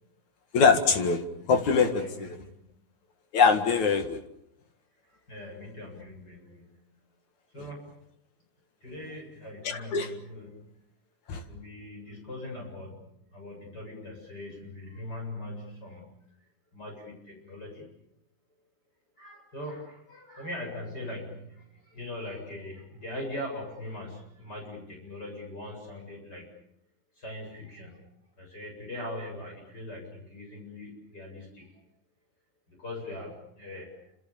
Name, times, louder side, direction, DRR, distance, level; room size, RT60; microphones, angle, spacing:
voice 1, 0.5-2.3 3.3-4.2 9.6-10.1 11.3-11.4, left 5 dB, 55° left, 7 dB, 3.0 m, -23 dB
voice 2, 1.8-2.7 5.0-6.7 7.5-7.9 8.8-10.7 11.5-13.0 13.3-16.1 16.7-17.9 19.2-26.5 27.2-28.0 28.4-31.8 32.7-34.0, left 1 dB, 25° left, 0 dB, 8.3 m, -41 dB
28.5 x 27.5 x 7.1 m, 0.75 s
omnidirectional pair, 4.3 m